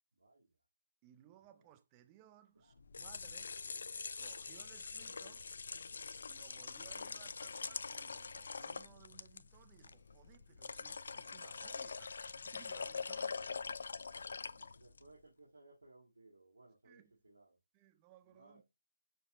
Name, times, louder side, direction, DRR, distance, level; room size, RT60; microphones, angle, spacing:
voice 1, 0.1-0.5 1.5-1.6 2.5-3.1 14.5-17.6 18.3-18.6, right 2 dB, 85° right, 1.8 m, -63 dB
voice 2, 1.0-3.5 4.1-5.5 6.2-13.4 16.8-17.2 17.7-18.6, right 12 dB, 20° right, 0.5 m, -62 dB
sound 1, 2.7-15.1, left 5 dB, 65° left, 0.3 m, -44 dB
6.6 x 2.9 x 2.5 m
figure-of-eight pair, 160°, 0 cm